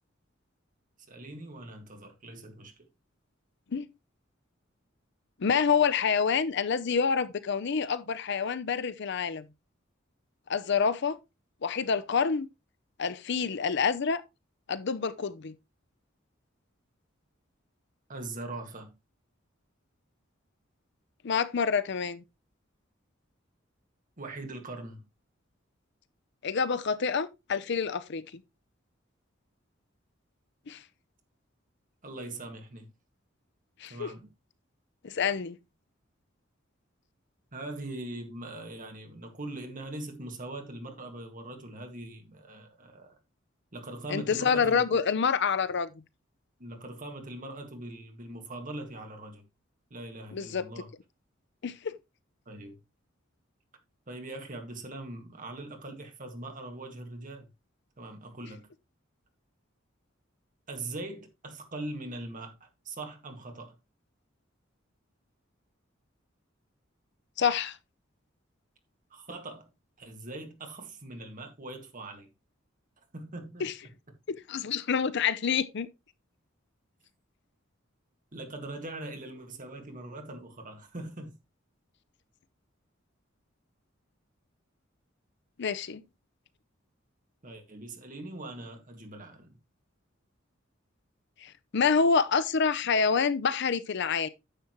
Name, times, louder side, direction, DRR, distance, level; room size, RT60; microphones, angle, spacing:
voice 1, 1.1-2.9 18.1-18.9 24.2-25.0 32.0-32.9 33.9-34.2 37.5-43.2 43.7-44.8 46.6-49.4 49.9-50.9 52.4-52.8 54.1-57.5 58.0-58.7 60.7-63.8 69.1-69.7 70.0-72.3 73.1-73.7 78.3-81.4 87.4-89.6, right 2 dB, 45° right, 1.8 m, -41 dB
voice 2, 5.4-9.4 10.5-11.2 11.6-12.5 13.0-14.2 14.7-15.5 21.2-22.2 26.4-28.4 30.7-30.8 33.8-34.1 35.0-35.6 44.1-45.9 50.3-50.6 51.6-51.9 67.4-67.8 73.6-73.7 74.3-75.9 85.6-86.0 91.4-94.3, left 6 dB, 60° left, 0.6 m, -27 dB
10.0 x 7.1 x 3.0 m
head